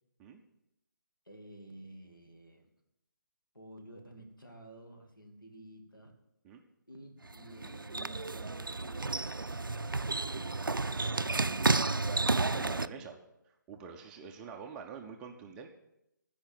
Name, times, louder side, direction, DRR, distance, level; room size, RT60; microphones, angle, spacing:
voice 1, 1.3-2.7 3.5-6.1 6.9-12.0 12.6-13.2, right 1 dB, 90° left, 3 dB, 2.2 m, -52 dB
sound 1, 7.2-12.9, right 3 dB, 90° right, 0.4 m, -31 dB
voice 2, 10.8-11.2 12.5-13.2 13.7-15.7, right 6 dB, 10° right, 2 dB, 0.4 m, -46 dB
14.0 x 5.0 x 7.6 m, 0.84 s
figure-of-eight pair, 145°, 11 cm